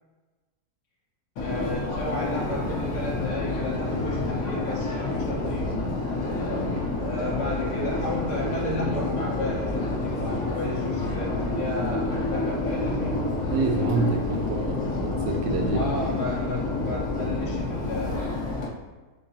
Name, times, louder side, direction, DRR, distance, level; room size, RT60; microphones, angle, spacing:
Subway metro underground, 1.4-18.7, left 2 dB, 65° left, 1.2 m, -28 dB
voice 1, 1.4-5.7 7.0-13.2 15.7-18.4, left 2 dB, 30° left, -6 dB, 1.1 m, -33 dB
voice 2, 13.5-15.9, right 3 dB, 60° right, 1 dB, 0.7 m, -27 dB
4.5 x 3.7 x 2.8 m, 1.3 s
omnidirectional pair, 1.7 m